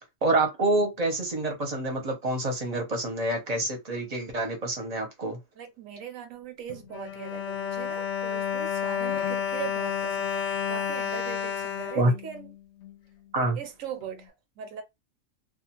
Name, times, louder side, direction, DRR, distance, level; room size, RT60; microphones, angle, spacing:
voice 1, 0.2-5.4 11.9-12.1 13.3-13.6, right 2 dB, 35° right, 0.7 m, -27 dB
voice 2, 5.6-12.5 13.5-14.8, right 8 dB, 75° right, 1.0 m, -40 dB
Bowed string instrument, 6.7-12.9 13.6-13.7 14.0-14.1, left 8 dB, 65° left, 0.8 m, -31 dB
2.4 x 2.4 x 2.8 m
omnidirectional pair, 1.4 m